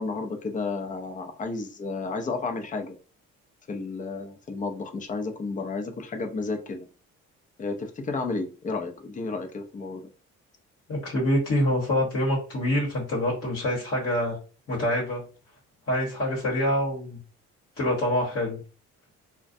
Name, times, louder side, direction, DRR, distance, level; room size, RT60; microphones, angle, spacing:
voice 1, 0.0-3.0 3.7-6.9 7.6-10.0, left 3 dB, 25° left, 6 dB, 0.5 m, -32 dB
voice 2, 10.9-14.4 14.7-15.2 15.9-17.2 17.8-18.6, left 1 dB, 50° left, -4 dB, 1.0 m, -26 dB
2.4 x 2.1 x 2.5 m, 0.36 s
cardioid pair, 90°, 30 cm